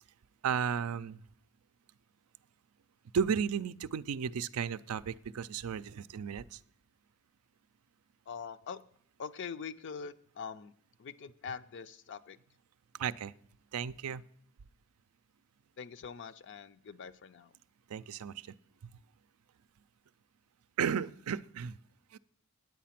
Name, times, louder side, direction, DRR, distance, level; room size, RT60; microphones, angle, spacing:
voice 1, 0.4-1.2 3.1-6.6 12.9-13.3 13.7-14.2 17.9-18.5 20.8-21.8 22.1-22.2, right 7 dB, 75° right, 15 dB, 0.4 m, -34 dB
voice 2, 8.3-8.8 9.2-10.7 11.0-12.4 15.8-17.5, left 6 dB, 55° left, 14 dB, 0.5 m, -43 dB
9.3 x 8.4 x 5.8 m, 0.65 s
head